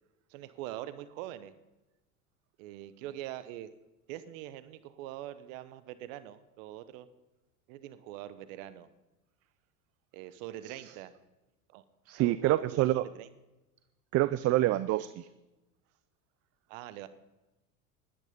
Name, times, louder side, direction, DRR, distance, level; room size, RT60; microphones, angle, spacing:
voice 1, 0.3-1.5 2.6-3.7 4.1-7.1 7.7-8.9 10.1-11.1 11.7-11.8 12.1-12.8 13.1-13.3 16.7-17.1, right 13 dB, 65° right, 13 dB, 1.0 m, -43 dB
voice 2, 12.1-13.1 14.1-15.3, right 16 dB, 35° right, 15 dB, 0.5 m, -27 dB
13.5 x 11.0 x 5.2 m, 1.0 s
hypercardioid pair, 95°, 42 cm